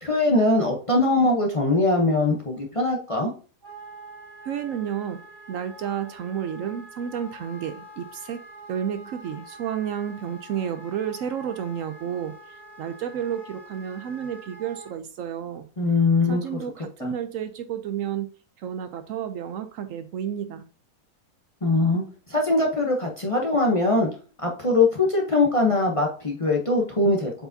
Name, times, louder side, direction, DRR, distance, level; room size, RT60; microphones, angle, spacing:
voice 1, 0.0-3.3 15.8-16.4 17.0-17.1 21.6-22.0 22.3-24.1 24.4-27.3, left 2 dB, 30° left, 0.8 m, -21 dB
Wind instrument woodwind instrument, 3.6-14.9, right 1 dB, 15° right, 1.6 m, -45 dB
voice 2, 4.4-5.2 5.5-8.4 8.7-12.3 12.8-15.7 16.3-18.3 18.6-20.7, right 9 dB, 70° right, 0.9 m, -31 dB
7.7 x 4.7 x 2.7 m
omnidirectional pair, 1.6 m